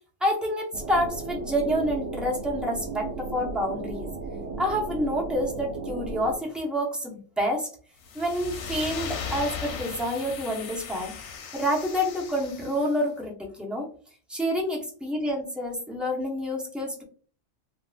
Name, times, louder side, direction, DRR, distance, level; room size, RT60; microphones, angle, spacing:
voice 1, 0.2-4.1 4.6-7.7 8.1-11.1 11.5-13.9 14.3-17.0, equal, ahead, -2 dB, 0.4 m, -28 dB
sound 1, 0.7-6.4, right 4 dB, 80° right, 0.9 m, -35 dB
sound 2, 8.0-13.0, left 6 dB, 70° left, 0.9 m, -37 dB
3.4 x 2.3 x 2.4 m, 0.42 s
omnidirectional pair, 1.3 m